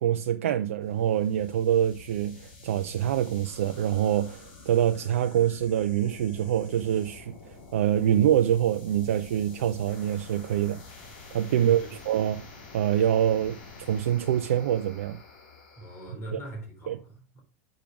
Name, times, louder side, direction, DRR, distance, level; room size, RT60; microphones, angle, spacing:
voice 1, 0.0-7.3 7.7-10.8 11.3-12.4 12.7-13.6 13.9-15.2 16.3-16.4 16.9-17.0, right 10 dB, 80° right, 0.5 m, -25 dB
sound 1, 0.8-16.1, left 3 dB, 55° left, 3.1 m, -48 dB
voice 2, 11.6-12.0 15.8-17.4, right 2 dB, 35° left, 3.7 m, -41 dB
6.4 x 5.1 x 5.8 m
hypercardioid pair, 105°, 7 cm